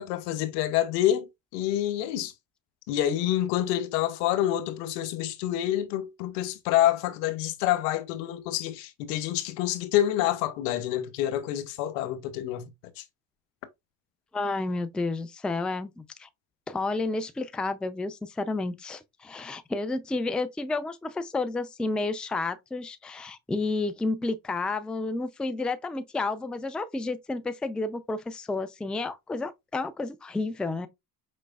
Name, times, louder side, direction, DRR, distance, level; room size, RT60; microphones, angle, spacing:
voice 1, 0.0-2.3 2.9-12.7 13.0-13.1, left 12 dB, 80° left, 0.8 m, -27 dB
voice 2, 14.3-16.3 16.7-30.9, left 3 dB, ahead, 0.4 m, -31 dB
5.1 x 3.2 x 2.3 m
hypercardioid pair, 65°, 47 cm